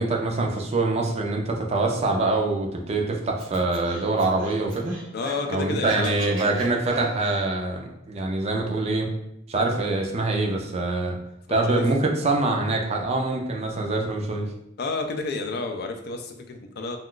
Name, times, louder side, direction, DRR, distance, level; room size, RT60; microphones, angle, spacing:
voice 1, 0.0-5.0 5.5-9.1 9.5-11.2 11.5-14.5, right 2 dB, 35° right, 1 dB, 0.4 m, -24 dB
Scratching (performance technique), 3.4-5.5 5.8-7.4, right 2 dB, 80° right, 0.9 m, -40 dB
voice 2, 5.1-6.6 11.5-12.0 14.8-17.0, left 3 dB, 55° left, 5 dB, 0.4 m, -31 dB
2.3 x 2.3 x 3.6 m, 0.81 s
head